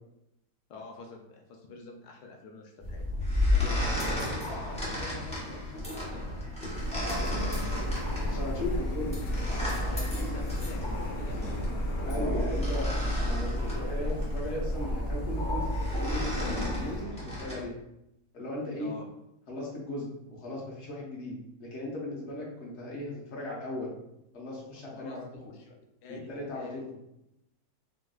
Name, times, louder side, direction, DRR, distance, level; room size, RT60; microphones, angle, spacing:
voice 1, 0.7-3.0 3.7-6.3 7.3-7.9 8.5-8.9 9.5-11.9 18.8-19.1 24.9-25.2 25.4-25.7 26.0-26.8, left 3 dB, 90° left, 2 dB, 1.2 m, -47 dB
sound 1, 2.8-17.6, left 1 dB, 5° left, 0.6 m, -34 dB
Printer, 6.7-17.0, equal, 70° left, 1.1 m, -32 dB
voice 2, 7.1-7.8 8.3-9.2 12.0-15.7 16.0-17.7 18.3-18.9 19.5-23.9 24.3-25.2 26.1-27.0, left 1 dB, 50° left, -4 dB, 1.1 m, -37 dB
3.9 x 2.6 x 2.3 m, 0.84 s
omnidirectional pair, 1.7 m